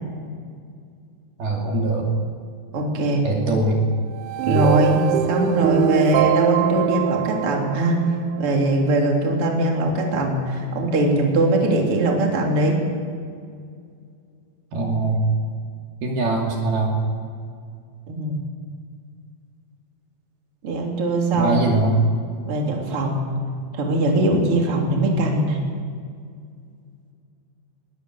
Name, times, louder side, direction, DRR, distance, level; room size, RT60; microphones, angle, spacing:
voice 1, 1.4-2.1 3.2-3.8 4.5-4.7 14.7-15.2 16.0-16.9 21.3-22.0, right 2 dB, 55° right, -1 dB, 4.3 m, -22 dB
voice 2, 2.7-3.2 4.5-5.0 5.3-8.0 8.4-12.8 18.1-18.4 20.6-21.6 22.5-23.2 23.7-25.6, right 1 dB, 30° right, 0 dB, 3.6 m, -21 dB
sound 1, 4.2-8.5, right 11 dB, 80° right, 2.3 m, -23 dB
21.5 x 21.5 x 8.1 m, 2.2 s
omnidirectional pair, 5.5 m